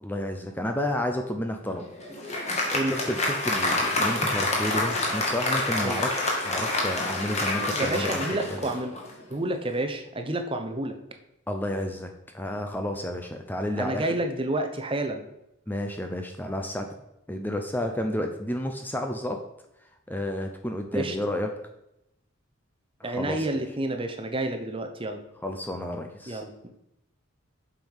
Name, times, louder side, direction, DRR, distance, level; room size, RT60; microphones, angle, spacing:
voice 1, 0.0-1.8 2.7-8.7 11.5-14.1 15.7-16.9 17.3-19.4 20.1-21.5 23.0-23.4 25.4-26.4, left 1 dB, 10° left, 4 dB, 0.6 m, -31 dB
Applause, 1.7-9.2, left 2 dB, 30° left, 1.8 m, -28 dB
voice 2, 2.7-3.0 5.8-6.0 7.7-8.9 9.3-11.0 13.8-15.2 20.9-21.2 23.0-25.2 26.3-26.7, right 1 dB, 25° right, 5 dB, 0.8 m, -29 dB
7.6 x 5.5 x 5.6 m, 0.84 s
head